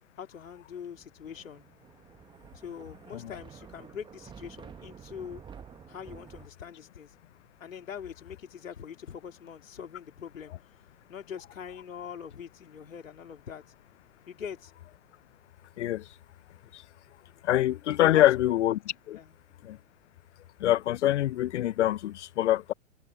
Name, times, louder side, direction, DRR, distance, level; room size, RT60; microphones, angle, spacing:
voice 1, 0.2-1.6 2.5-5.4 5.9-7.1 7.6-10.5 11.1-13.6 14.3-14.7 18.0-18.3 19.1-19.4, left 8 dB, 75° left, 3.1 m, -42 dB
Thunder, 1.0-6.5, right 7 dB, 10° right, 1.0 m, -50 dB
voice 2, 17.4-18.8 19.1-19.2 19.6-19.8 20.6-22.7, left 13 dB, 60° left, 0.6 m, -24 dB
hypercardioid pair, 120°, 40 cm